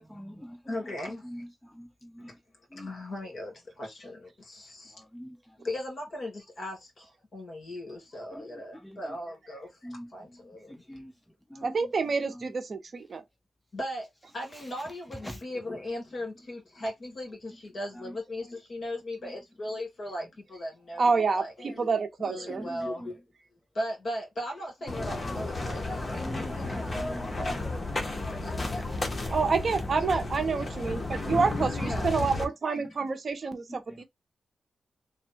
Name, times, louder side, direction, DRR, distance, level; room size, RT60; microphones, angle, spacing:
voice 1, 0.0-0.8 1.2-2.3 2.7-2.9 4.9-5.5 8.3-8.5 8.8-9.2 9.8-10.1 10.7-11.1 11.5-11.8 15.2-15.4 18.0-18.1 22.5-23.1 25.3-25.4 26.2-27.6 31.6-31.9 32.8-32.9 33.7-34.0, equal, 5° left, 0.5 m, -43 dB
voice 2, 0.7-1.3 2.2-2.4 2.7-4.9 5.6-11.0 13.7-23.2 23.7-27.6 28.4-28.9 30.0-30.1 30.5-30.7 31.8-32.2 32.7-32.8, left 1 dB, 55° left, 2.4 m, -38 dB
voice 3, 11.6-13.2 21.0-22.6 29.3-34.0, right 4 dB, 55° right, 0.7 m, -28 dB
sound 1, 24.9-32.4, left 2 dB, 35° left, 1.0 m, -33 dB
3.4 x 2.2 x 4.3 m
wide cardioid pair, 100°, 0 cm